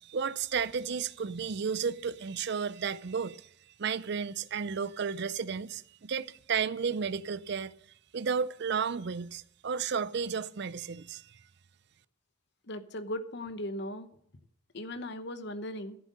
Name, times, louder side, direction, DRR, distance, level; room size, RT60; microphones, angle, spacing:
voice 1, 0.0-3.5 3.8-7.7 8.1-11.4, right 6 dB, 55° right, 0.5 m, -33 dB
voice 2, 12.7-14.1 14.7-16.0, left 1 dB, 55° left, 1.0 m, -38 dB
13.5 x 7.5 x 6.6 m
head